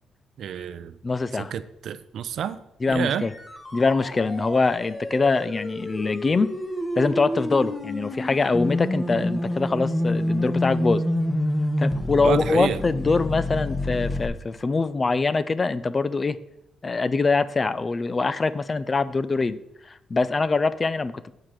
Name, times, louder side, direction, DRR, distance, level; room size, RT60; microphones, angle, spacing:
voice 1, 0.4-1.0 1.3-2.6 2.9-3.2 12.2-12.8, right 8 dB, 70° right, 14 dB, 0.5 m, -29 dB
voice 2, 1.0-1.5 2.8-3.3 3.7-6.5 7.0-11.0 11.8-16.4 16.8-19.6 19.9-21.3, left 4 dB, 30° left, 15 dB, 0.4 m, -23 dB
sound 1, 2.9-14.3, left 1 dB, 15° left, 1.1 m, -28 dB
7.6 x 4.9 x 7.3 m, 0.82 s
cardioid pair, 110°, 0 cm